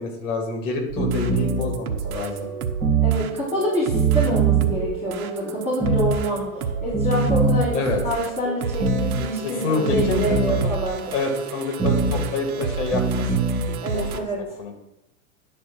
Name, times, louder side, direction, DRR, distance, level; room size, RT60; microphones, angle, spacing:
voice 1, 0.0-2.5 7.7-8.0 9.4-10.2 11.1-13.3 13.9-14.2 14.6-14.7, left 4 dB, 55° left, 4 dB, 2.5 m, -27 dB
sound 1, 0.9-14.2, right 7 dB, 80° right, 1.2 m, -32 dB
sound 2, 1.0-13.9, right 4 dB, 5° right, 2.6 m, -25 dB
voice 2, 3.0-6.4 6.8-11.0 13.8-14.4, equal, 15° left, -11 dB, 3.6 m, -26 dB
10.5 x 4.3 x 7.2 m, 0.88 s
supercardioid pair, 165°, 43 cm